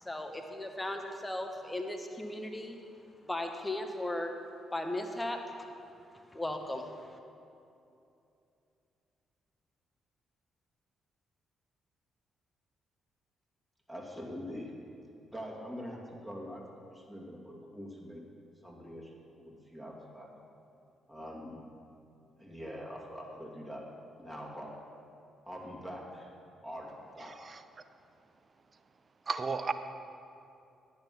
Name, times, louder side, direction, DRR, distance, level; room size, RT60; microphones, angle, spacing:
voice 1, 0.0-2.8 3.2-4.3 4.7-5.4 6.3-7.2, left 1 dB, 15° left, 4 dB, 1.4 m, -37 dB
voice 2, 13.9-14.7 15.3-18.2 18.6-20.3 21.1-21.6 22.4-23.8 24.2-24.7 25.4-26.3 26.6-27.4, equal, ahead, -2 dB, 2.6 m, -44 dB
voice 3, 27.2-27.6 29.3-29.7, right 4 dB, 40° right, 10 dB, 0.7 m, -34 dB
10.5 x 7.9 x 6.1 m, 2.7 s
hypercardioid pair, 45°, 0 cm